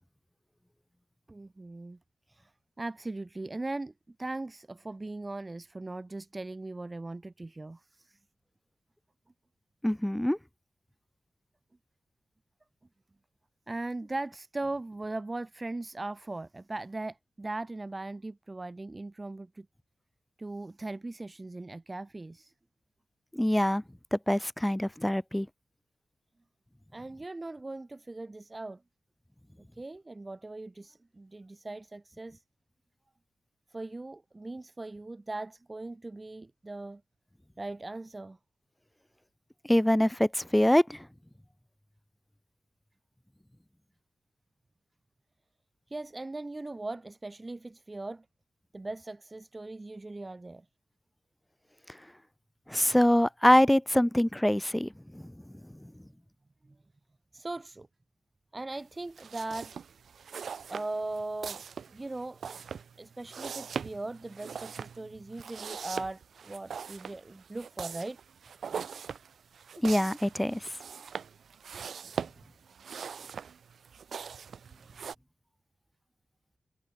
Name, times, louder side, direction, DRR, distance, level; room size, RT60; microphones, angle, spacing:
voice 1, 1.3-2.0 2.3-2.5 2.8-8.2 13.7-19.7 20.4-22.5 26.9-28.8 29.6-32.4 33.7-37.0 37.6-38.4 45.9-48.2 48.7-50.7 56.6-56.8 57.3-57.9 58.5-59.8 60.7-61.6 61.9-62.6 63.0-68.2 74.7-74.8, right 2 dB, 20° right, 4.0 m, -39 dB
voice 2, 9.8-10.4 23.3-23.8 24.1-25.5 39.7-41.1 52.7-55.2 55.8-55.9 69.8-70.8, left 1 dB, 5° left, 0.6 m, -24 dB
sound 1, 59.1-75.1, right 7 dB, 80° right, 0.9 m, -41 dB
wide cardioid pair, 175°, 0 cm